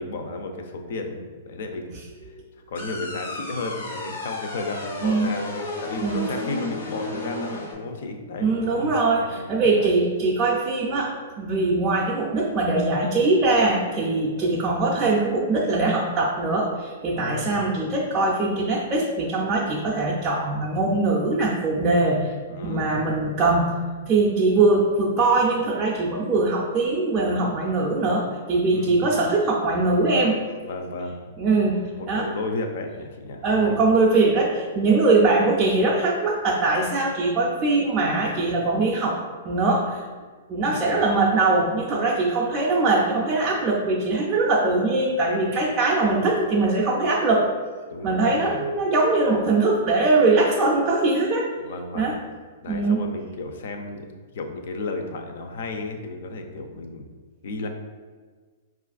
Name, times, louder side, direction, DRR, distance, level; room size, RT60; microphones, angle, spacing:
voice 1, 0.0-2.0 2.7-9.5 9.8-9.9 17.0-17.7 22.5-23.0 28.7-29.2 30.6-31.2 31.6-33.6 40.7-41.0 47.9-48.7 51.6-52.1 52.6-54.1 54.3-57.1 57.4-57.7, left 2 dB, 55° left, 5 dB, 0.4 m, -33 dB
sound 1, 2.7-7.7, left 2 dB, 85° left, 1.0 m, -33 dB
voice 2, 8.4-22.3 22.6-23.8 24.1-30.4 31.4-32.3 33.4-39.2 39.4-40.0 40.5-47.5 48.0-51.5 51.9-52.2 52.6-53.0, right 3 dB, 20° right, -4 dB, 0.4 m, -22 dB
4.8 x 2.4 x 2.4 m, 1.5 s
hypercardioid pair, 170°, 0 cm